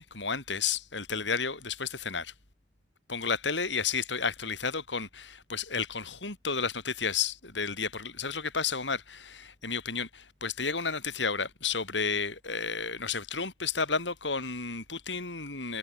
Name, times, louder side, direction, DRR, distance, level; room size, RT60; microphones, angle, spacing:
voice 1, 0.0-2.3 3.1-15.8, left 5 dB, 75° left, 6.0 m, -32 dB
head